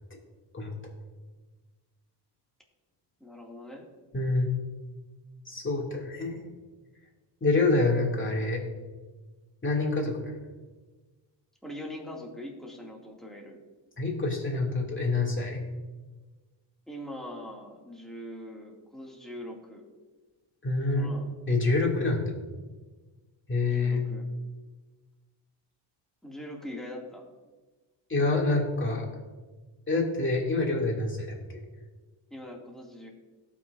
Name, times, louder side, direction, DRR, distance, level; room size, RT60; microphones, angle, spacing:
voice 1, 3.2-3.9 11.6-13.6 16.9-19.8 20.9-21.3 23.7-24.3 26.2-27.3 32.3-33.1, left 1 dB, ahead, -2 dB, 2.6 m, -42 dB
voice 2, 4.1-4.5 5.5-6.4 7.4-8.6 9.6-10.4 14.0-15.6 20.6-21.1 21.5-22.3 23.5-24.0 28.1-29.0 29.9-31.4, left 3 dB, 25° left, -1 dB, 2.8 m, -26 dB
17.5 x 6.3 x 2.7 m, 1.3 s
cardioid pair, 75°, 47 cm